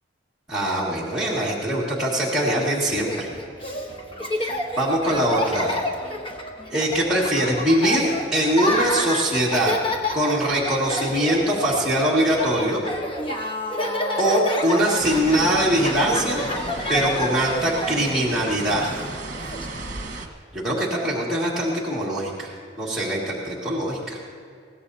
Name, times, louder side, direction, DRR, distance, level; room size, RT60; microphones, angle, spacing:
voice 1, 0.5-3.3 4.4-5.7 6.7-9.7 10.1-12.8 14.2-16.4 16.9-18.9 20.5-24.2, right 1 dB, 5° right, -8 dB, 2.0 m, -22 dB
Laughter, 2.9-19.7, left 1 dB, 30° left, 1.1 m, -29 dB
sound 1, 15.0-20.3, right 2 dB, 45° right, 1.3 m, -34 dB
22.0 x 16.5 x 2.8 m, 2.2 s
head